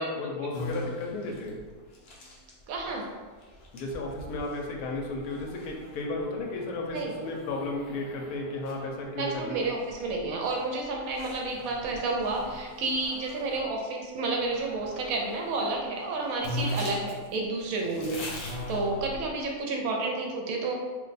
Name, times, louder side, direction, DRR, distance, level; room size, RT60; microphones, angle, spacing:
voice 1, 0.0-1.6 3.7-9.7 18.0-18.2, left 2 dB, 80° left, 1 dB, 1.1 m, -34 dB
sound 1, 0.5-13.7 14.4-15.8 16.1-16.2 16.4-19.5, left 1 dB, 55° left, 0.7 m, -41 dB
voice 2, 2.7-3.1 6.9-7.1 9.2-20.7, right 3 dB, 75° right, 0 dB, 1.0 m, -31 dB
2.6 x 2.2 x 3.9 m, 1.4 s
omnidirectional pair, 1.6 m